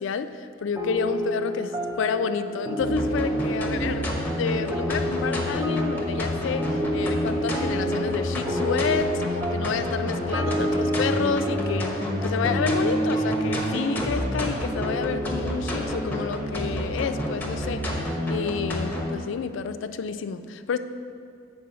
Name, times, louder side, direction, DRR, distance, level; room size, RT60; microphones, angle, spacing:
voice 1, 0.0-1.7 2.0-4.1 4.4-20.8, left 5 dB, 65° left, 10 dB, 0.3 m, -29 dB
sound 1, 0.8-17.6, right 1 dB, 15° right, 0.5 m, -30 dB
sound 2, 2.8-19.1, left 1 dB, 10° left, 0.9 m, -29 dB
7.5 x 4.4 x 5.6 m, 2.3 s
head